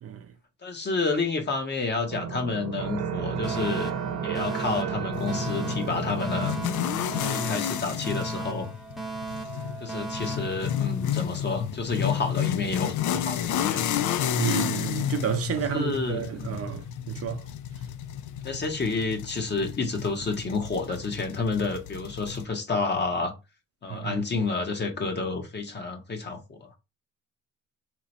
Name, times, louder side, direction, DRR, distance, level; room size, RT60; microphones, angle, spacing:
voice 1, 0.6-3.9 4.2-6.6 7.2-8.7 9.8-13.9 15.7-16.7 18.4-23.3 23.8-26.7, left 3 dB, 35° left, 1.1 m, -30 dB
sound 1, 2.1-7.3, right 7 dB, 85° right, 0.8 m, -33 dB
Alarm, 3.4-11.4, right 3 dB, ahead, 0.7 m, -37 dB
sound 2, 5.1-22.4, left 10 dB, 75° left, 0.5 m, -31 dB
voice 2, 14.4-17.4 23.9-24.2, right 8 dB, 50° right, 0.6 m, -31 dB
3.0 x 2.4 x 4.1 m
cardioid pair, 90°, 30 cm